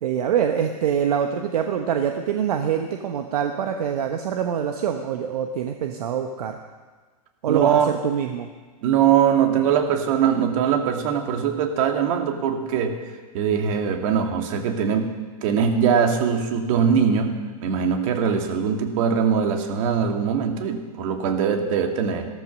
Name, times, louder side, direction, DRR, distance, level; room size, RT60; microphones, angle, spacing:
voice 1, 0.0-6.6 7.4-8.5, right 8 dB, 75° right, 5 dB, 1.1 m, -25 dB
voice 2, 7.5-7.9 8.8-12.9 13.3-15.1 15.4-22.3, right 7 dB, 55° right, 4 dB, 2.3 m, -21 dB
15.0 x 13.5 x 6.2 m, 1.4 s
hypercardioid pair, 115°, 20 cm